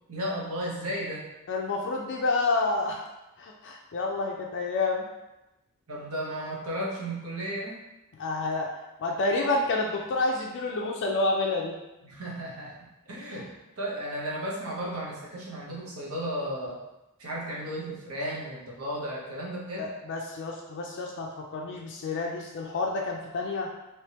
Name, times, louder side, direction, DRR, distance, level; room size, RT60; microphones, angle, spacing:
voice 1, 0.1-1.3 5.9-7.8 12.0-13.5 13.8-16.8 17.2-19.9, equal, 70° right, -4 dB, 1.0 m, -34 dB
voice 2, 1.5-3.0 3.4-5.0 8.2-8.7 9.0-11.8 13.3-13.4 19.8-23.7, left 3 dB, 55° left, 0 dB, 0.4 m, -29 dB
3.4 x 3.0 x 2.9 m, 0.96 s
head